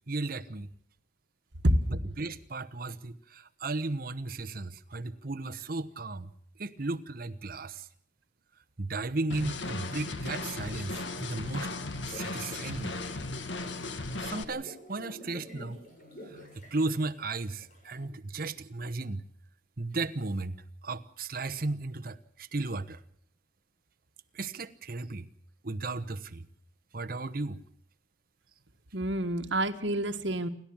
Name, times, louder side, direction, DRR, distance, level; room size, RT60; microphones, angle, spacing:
voice 1, 0.1-0.7 1.9-6.3 6.6-7.9 8.8-11.7 12.1-13.0 14.2-15.8 16.3-19.2 19.8-23.0 24.3-25.3 25.6-26.4 26.9-27.6, right 3 dB, 50° right, 10 dB, 1.0 m, -35 dB
voice 2, 1.6-2.0 28.9-30.5, right 1 dB, 75° right, 6 dB, 1.7 m, -27 dB
sound 1, 9.3-14.4, left 2 dB, 80° left, 1.7 m, -36 dB
sound 2, 11.3-18.1, equal, 45° left, 7.0 m, -50 dB
28.5 x 12.0 x 8.7 m, 0.67 s
head